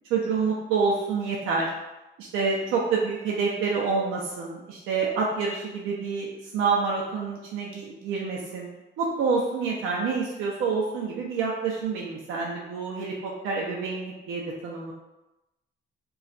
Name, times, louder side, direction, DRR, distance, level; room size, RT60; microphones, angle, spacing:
voice 1, 0.1-1.7 2.2-8.7 9.0-14.9, right 4 dB, 90° right, -3 dB, 0.6 m, -27 dB
2.4 x 2.3 x 4.0 m, 0.97 s
cardioid pair, 90°, 20 cm